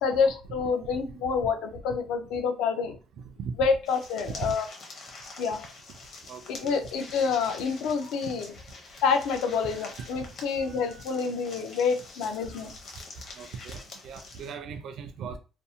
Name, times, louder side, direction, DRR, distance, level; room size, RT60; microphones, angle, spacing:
voice 1, 0.0-3.0 3.6-4.7 5.4-5.7 6.5-8.5 9.0-12.7, left 5 dB, 75° left, 0.4 m, -27 dB
sound 1, 3.8-14.5, left 3 dB, 40° left, 0.7 m, -46 dB
voice 2, 6.3-6.8 9.7-10.3 10.6-11.0 13.4-15.4, right 6 dB, 55° right, 0.3 m, -39 dB
2.5 x 2.0 x 2.7 m
cardioid pair, 160°, 0 cm